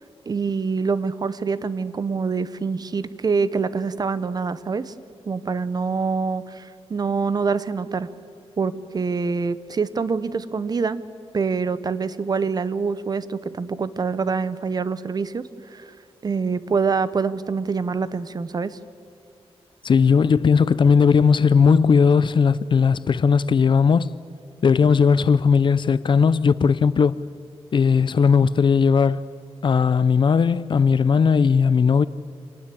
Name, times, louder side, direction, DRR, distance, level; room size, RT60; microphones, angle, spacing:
voice 1, 0.3-4.9 5.3-8.1 8.6-11.0 11.3-15.9 16.2-18.8, right 5 dB, 40° right, 0.9 m, -25 dB
voice 2, 19.8-24.1 24.6-27.2 27.7-29.2 29.6-32.1, left 6 dB, 50° left, 0.5 m, -17 dB
26.5 x 19.5 x 8.4 m
wide cardioid pair, 150°, 11 cm